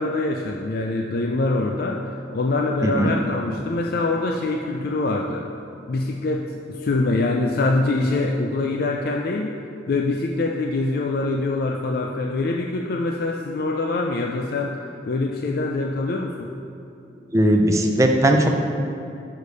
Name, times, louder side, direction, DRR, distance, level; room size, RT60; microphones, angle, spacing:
voice 1, 0.0-2.0 2.3-5.5 5.9-9.5 9.9-14.8 15.0-16.5, left 2 dB, 50° left, 1 dB, 0.4 m, -24 dB
voice 2, 17.3-18.5, right 1 dB, 15° right, 2 dB, 0.5 m, -18 dB
6.5 x 5.0 x 5.3 m, 2.7 s
head